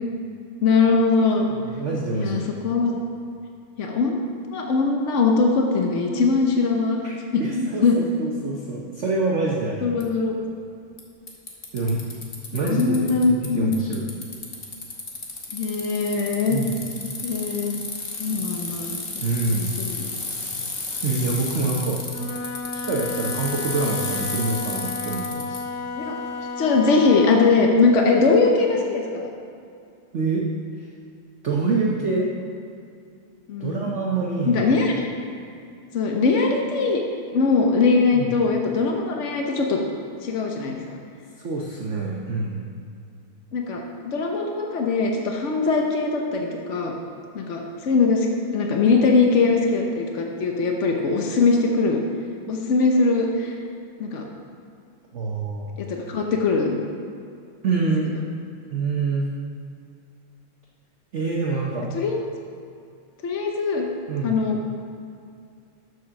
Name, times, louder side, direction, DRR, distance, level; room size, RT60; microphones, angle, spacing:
voice 1, 0.6-1.5 2.1-2.9 3.8-4.2 4.5-7.0 7.3-8.0 9.8-10.3 12.5-13.8 15.5-16.6 17.2-17.8 18.2-19.0 19.5-20.1 26.0-26.2 26.6-29.3 33.5-33.8 34.5-35.0 35.9-37.0 37.3-39.8 40.2-41.0 43.5-46.9 47.3-48.3 48.5-52.0 52.5-53.5 54.0-54.2 55.8-56.8 61.9-62.2 63.2-63.9 64.2-64.6, left 4 dB, 80° left, 1 dB, 0.6 m, -21 dB
voice 2, 1.5-2.5 7.0-9.9 11.7-12.0 12.5-14.0 16.5-16.7 19.2-19.7 21.0-22.0 22.7-25.6 30.1-30.4 31.4-32.3 33.6-34.8 38.1-38.3 41.4-42.7 55.1-55.7 57.6-58.1 58.7-59.3 61.1-61.9 64.1-64.4, right 3 dB, 65° right, -2 dB, 0.7 m, -26 dB
Bicycle, 10.0-10.1 11.0-11.1 11.3-13.5 13.7-25.6, left 3 dB, 40° left, 0.8 m, -32 dB
Wind instrument woodwind instrument, 22.0-27.4, left 3 dB, 65° left, 1.1 m, -32 dB
7.3 x 6.2 x 6.2 m, 2.5 s
omnidirectional pair, 2.3 m